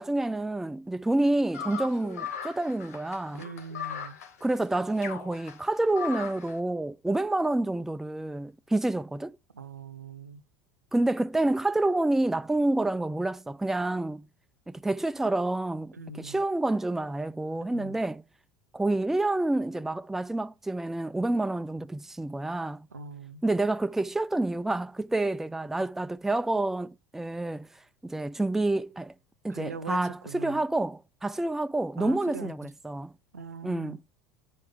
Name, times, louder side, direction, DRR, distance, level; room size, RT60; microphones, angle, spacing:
voice 1, 0.0-3.4 4.4-9.4 10.9-14.3 14.7-18.2 18.7-22.9 23.4-27.7 28.0-29.1 29.4-33.1 33.6-34.0, right 2 dB, 5° right, 0.4 m, -28 dB
sound 1, 1.5-6.5, left 7 dB, 70° left, 2.1 m, -39 dB
voice 2, 3.3-4.2 9.5-10.4 15.9-16.4 17.6-18.0 22.9-23.4 29.5-30.6 32.0-32.5 33.3-34.0, right 4 dB, 85° right, 0.8 m, -41 dB
11.0 x 5.6 x 5.2 m
figure-of-eight pair, 75°, 8 cm